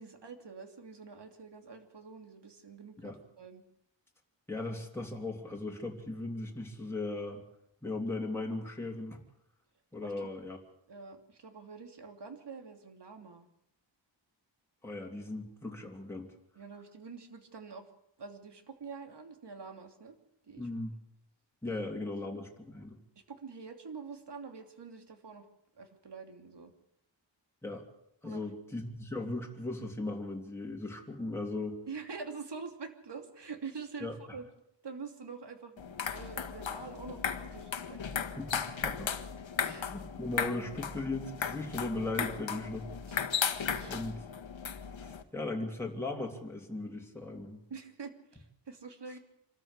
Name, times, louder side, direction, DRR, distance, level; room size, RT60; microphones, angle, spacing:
voice 1, 0.0-3.6 10.0-10.3 10.9-13.5 16.5-17.9 18.2-20.2 20.5-20.7 21.7-21.8 22.1-22.2 23.3-25.4 25.7-26.7 28.2-28.5 31.9-34.4 34.8-38.0 39.6-39.9 42.2-42.3 43.1-43.2 43.7-44.0 47.7-49.2, right 5 dB, 65° right, 5 dB, 2.9 m, -46 dB
voice 2, 4.5-7.4 7.8-9.2 9.9-10.6 14.8-16.3 20.6-21.0 21.6-23.0 27.6-27.8 28.2-31.8 34.0-34.1 38.4-39.1 39.7-42.9 43.9-44.2 45.0-47.6, left 2 dB, 5° left, -1 dB, 3.1 m, -38 dB
sound 1, 35.8-45.2, left 7 dB, 85° left, 1.6 m, -36 dB
26.5 x 13.5 x 8.2 m, 0.77 s
wide cardioid pair, 120°, 45 cm